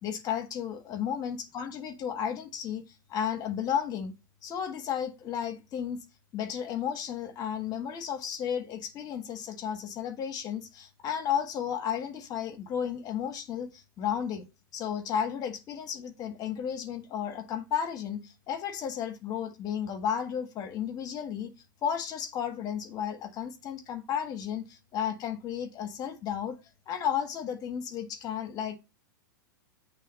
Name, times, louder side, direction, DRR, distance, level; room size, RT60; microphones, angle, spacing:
voice 1, 0.0-4.1 4.4-6.0 6.3-14.4 14.7-21.5 21.8-26.6 26.9-28.8, left 8 dB, 35° left, 1.6 m, -33 dB
8.3 x 3.5 x 5.3 m
hypercardioid pair, 105°, 11 cm